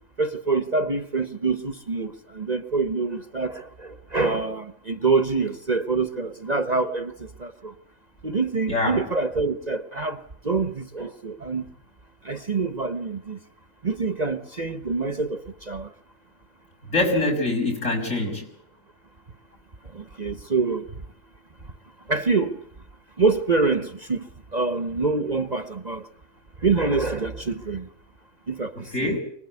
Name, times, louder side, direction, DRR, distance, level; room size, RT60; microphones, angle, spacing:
voice 1, 0.2-7.7 8.2-11.7 12.2-13.4 13.8-15.9 19.9-20.9 22.1-22.6 23.2-26.1 26.6-27.9 28.5-29.2, right 4 dB, 35° right, 1.1 m, -26 dB
voice 2, 8.7-9.0 16.9-18.5 28.9-29.2, left 2 dB, 65° left, 7.1 m, -24 dB
25.0 x 20.0 x 9.7 m
omnidirectional pair, 1.4 m